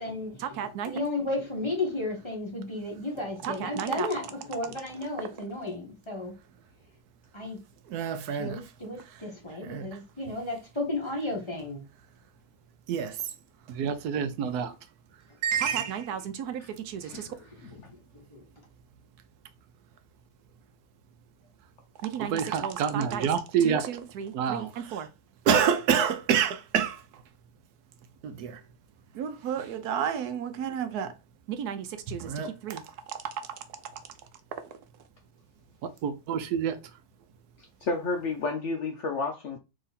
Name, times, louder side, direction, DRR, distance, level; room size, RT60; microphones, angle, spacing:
voice 1, 0.0-6.3 7.3-7.6 8.3-11.8 16.4-16.5 17.3-17.8 18.3-18.4, left 2 dB, 20° left, 1.4 m, -34 dB
voice 2, 0.6-0.9 3.4-4.1 7.9-8.6 9.7-9.8 12.9-13.1 13.7-14.7 15.4-16.6 16.9-17.0 22.1-25.1 25.5-26.9 28.2-28.5 29.2-31.1 31.6-32.8 36.0-36.8, right 8 dB, 75° right, 1.1 m, -28 dB
voice 3, 17.0-17.3 17.6-17.9 24.5-24.6 37.8-39.6, left 3 dB, 65° left, 0.8 m, -32 dB
3.8 x 3.1 x 4.0 m
omnidirectional pair, 1.7 m